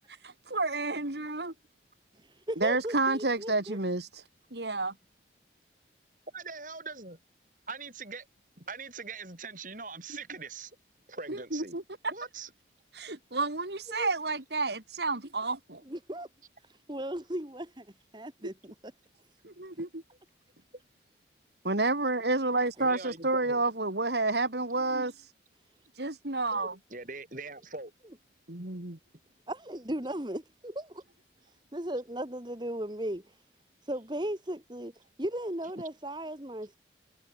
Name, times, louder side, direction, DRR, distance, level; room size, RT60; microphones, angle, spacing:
voice 1, 0.2-1.5 2.6-4.1 4.5-4.9 11.3-11.8 12.9-15.8 19.4-20.0 21.6-25.3 26.0-26.8 28.5-29.0, right 3 dB, 70° right, 2.7 m, -30 dB
voice 2, 2.1-3.8 13.9-14.1 15.9-16.3 16.6-17.9 18.1-18.9 19.7-19.8 26.5-26.7 29.5-31.0 31.7-33.2 33.8-34.9 35.2-36.8, right 1 dB, 25° right, 1.8 m, -36 dB
voice 3, 6.3-7.2 7.7-8.3 8.6-10.7 11.1-11.8 12.1-12.5 22.8-23.6 26.9-27.9, right 4 dB, 45° right, 6.9 m, -42 dB
head